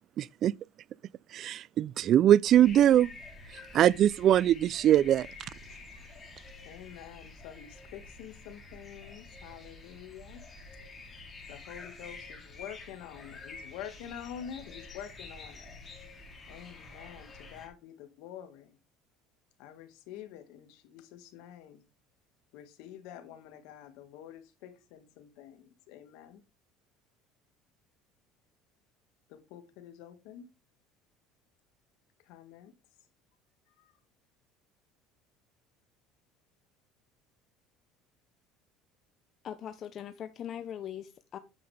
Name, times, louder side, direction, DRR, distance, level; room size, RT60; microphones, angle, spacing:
voice 1, 0.2-0.5 1.3-3.1 3.7-5.3, right 11 dB, 50° right, 0.3 m, -22 dB
sound 1, 2.5-17.7, left 3 dB, 25° left, 3.4 m, -48 dB
voice 2, 6.6-10.4 11.5-15.7 16.5-18.8 19.6-21.8 22.5-26.4 29.3-30.5 32.2-32.7 33.8-33.9, left 9 dB, 75° left, 1.7 m, -47 dB
voice 3, 39.4-41.4, left 9 dB, 45° left, 0.7 m, -40 dB
9.3 x 7.7 x 3.3 m
supercardioid pair, 110°, 0 cm